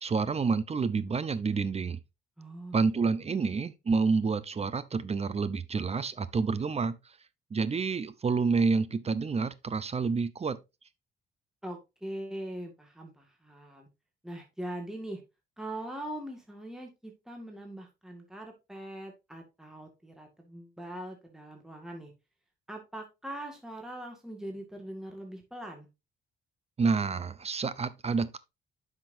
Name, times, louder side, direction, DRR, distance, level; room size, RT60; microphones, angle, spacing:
voice 1, 0.0-2.0 2.7-7.0 7.5-10.6 26.8-28.4, right 4 dB, 30° right, 0.8 m, -28 dB
voice 2, 2.4-2.8 3.4-3.5 11.6-13.9 14.2-15.2 15.6-22.1 22.7-25.9, right 1 dB, ahead, 1.9 m, -41 dB
10.0 x 5.9 x 2.7 m
cardioid pair, 90°, 20 cm